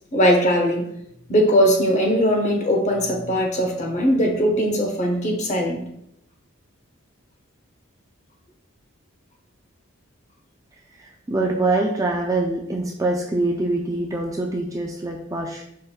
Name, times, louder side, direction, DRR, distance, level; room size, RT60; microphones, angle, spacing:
voice 1, 0.1-0.9 1.3-5.8, equal, 35° left, 2 dB, 0.8 m, -20 dB
voice 2, 11.0-15.6, right 2 dB, 15° right, 1 dB, 0.3 m, -24 dB
5.2 x 3.8 x 2.3 m, 0.77 s
head